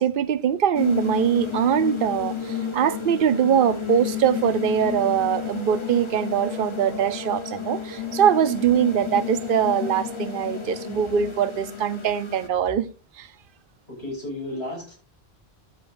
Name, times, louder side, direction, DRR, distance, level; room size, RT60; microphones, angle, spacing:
voice 1, 0.0-12.9 13.2-13.3, right 8 dB, 55° right, 0.8 m, -22 dB
sound 1, 0.7-12.5, left 7 dB, 30° left, 1.0 m, -32 dB
voice 2, 13.9-14.9, left 1 dB, 75° left, 6.4 m, -33 dB
12.5 x 9.7 x 2.6 m
omnidirectional pair, 1.1 m